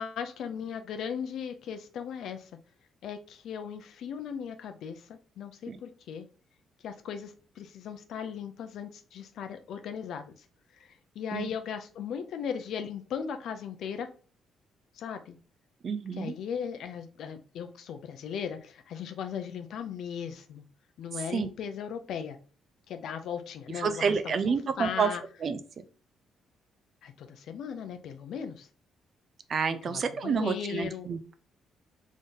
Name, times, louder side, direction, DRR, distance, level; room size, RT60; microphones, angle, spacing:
voice 1, 0.0-2.5 3.0-6.3 6.8-10.3 10.8-14.1 14.9-15.4 16.1-20.6 21.0-22.4 22.9-25.2 27.0-28.7 29.8-31.1, left 7 dB, 75° left, 8 dB, 0.5 m, -37 dB
voice 2, 15.8-16.3 21.3-21.5 23.8-25.1 25.4-25.6 29.5-31.3, right 5 dB, 50° right, 11 dB, 0.5 m, -29 dB
3.6 x 2.6 x 3.7 m, 0.38 s
cardioid pair, 90°, 0 cm